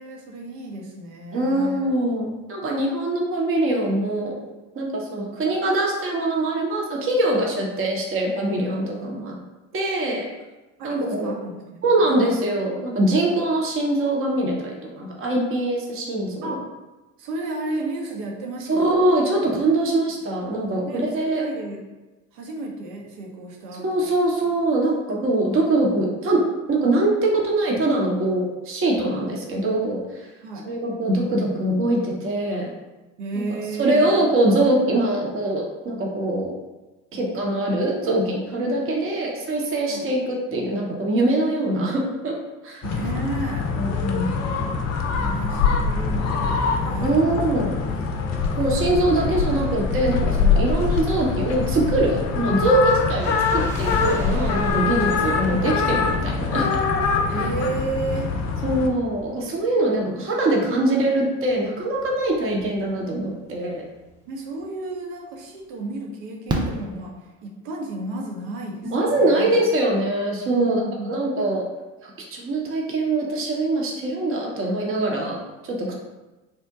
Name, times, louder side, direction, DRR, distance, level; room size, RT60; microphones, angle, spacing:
voice 1, 0.0-1.9 10.8-11.8 12.1-12.2 16.4-16.7 17.2-19.1 19.8-20.0 20.8-21.8 22.3-24.1 30.4-30.7 33.2-34.1 39.9-40.0 42.8-43.7 44.1-44.8 45.3-47.2 47.6-49.1 57.3-58.3 64.3-67.2 67.4-69.6 70.5-71.6, right 2 dB, 65° right, 1 dB, 0.8 m, -33 dB
voice 2, 1.3-4.4 4.7-9.3 9.7-10.2 10.8-11.3 11.8-16.6 18.7-21.4 23.8-26.4 26.7-30.3 30.6-32.7 33.8-36.5 37.1-42.3 42.6-42.8 43.8-44.5 45.2-45.3 47.0-47.8 48.6-56.7 58.6-63.8 68.9-70.8 71.1-71.6 72.0-75.9, right 1 dB, 30° right, -2 dB, 0.8 m, -23 dB
sound 1, 42.8-58.9, left 5 dB, 40° left, 0.5 m, -23 dB
sound 2, 53.2-60.5 60.7-60.8 61.5-63.3 63.6-63.7 63.9-64.2 64.6-64.7, equal, 5° left, 1.0 m, -40 dB
Fireworks, 64.8-64.9 66.5-67.8 69.6-69.7 69.9-70.0, right 2 dB, 15° right, 0.3 m, -29 dB
2.9 x 2.1 x 3.5 m, 1.1 s
hypercardioid pair, 65°, 40 cm